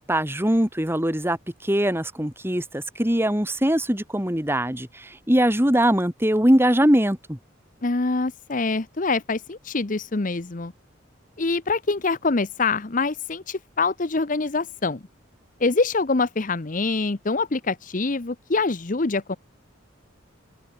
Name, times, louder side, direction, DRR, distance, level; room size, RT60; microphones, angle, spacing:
voice 1, 0.1-1.4 1.6-7.4, equal, 10° right, 3.2 m, -21 dB
voice 2, 7.8-10.7 11.4-15.0 15.6-19.4, left 3 dB, 40° left, 0.9 m, -25 dB
open air
head